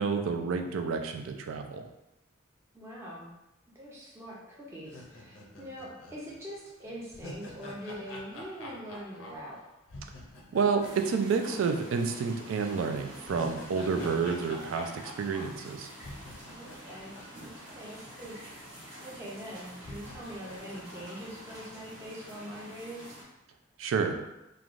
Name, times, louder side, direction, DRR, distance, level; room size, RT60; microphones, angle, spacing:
voice 1, 0.0-1.8 10.5-15.9 23.8-24.2, right 5 dB, 80° right, 5 dB, 0.3 m, -29 dB
voice 2, 2.7-3.3 3.7-9.6 16.5-23.1, equal, 15° right, -6 dB, 0.5 m, -43 dB
sound 1, 4.8-12.1 12.4-12.5 13.0-18.3 18.5-18.6 19.3-19.4 19.8-22.1, left 1 dB, 70° left, 0.5 m, -47 dB
sound 2, 10.8-23.2, equal, 65° right, 1.0 m, -47 dB
3.1 x 2.2 x 2.5 m, 0.91 s
head